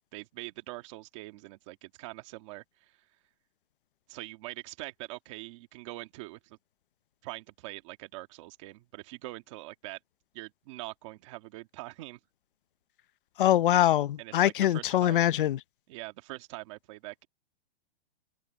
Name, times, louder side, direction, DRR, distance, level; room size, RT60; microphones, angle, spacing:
voice 1, 0.1-3.0 4.1-6.6 7.2-10.0 10.3-12.2 14.2-15.3 15.9-17.3, right 20 dB, 30° right, 1.7 m, -43 dB
voice 2, 13.4-15.6, left 12 dB, 55° left, 0.7 m, -23 dB
hypercardioid pair, 175°, 32 cm